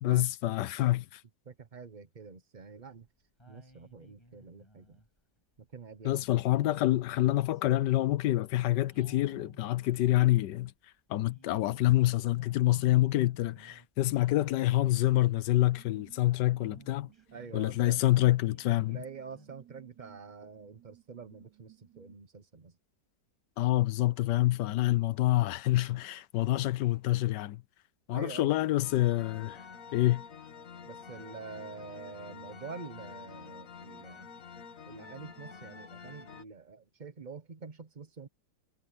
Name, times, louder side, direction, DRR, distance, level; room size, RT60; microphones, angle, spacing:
voice 1, 0.0-1.2 6.0-10.7 11.1-17.1 17.5-19.0 23.6-27.6 28.1-29.6 29.9-30.2, left 15 dB, 70° left, 1.3 m, -27 dB
voice 2, 1.4-3.1 3.5-5.0 5.6-6.4 17.3-18.0 18.9-22.8 28.1-28.5 30.9-34.3 34.9-38.3, right 5 dB, 30° right, 0.9 m, -46 dB
sound 1, 2.6-3.0 3.4-5.2 6.4-8.3 8.9-10.6 11.1-13.9 14.1-15.4 15.6-15.7 16.1-19.0 19.3-19.5, equal, 15° left, 8.1 m, -57 dB
sound 2, 14.8-22.2, right 13 dB, 60° right, 7.6 m, -60 dB
sound 3, 28.8-36.4, left 6 dB, 50° left, 1.7 m, -48 dB
omnidirectional pair, 2.0 m